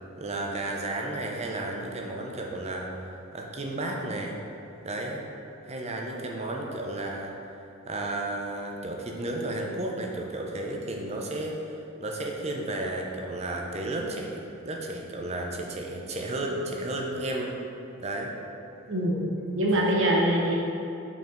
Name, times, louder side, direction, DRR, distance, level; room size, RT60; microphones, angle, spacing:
voice 1, 0.2-4.4 4.8-5.2 5.6-7.4 7.9-17.6 18.0-18.4 19.7-19.9, right 2 dB, 30° right, 0 dB, 0.7 m, -33 dB
voice 2, 18.9-19.3 19.5-20.5, right 1 dB, 65° right, -3 dB, 0.9 m, -23 dB
5.9 x 4.4 x 3.9 m, 2.8 s
head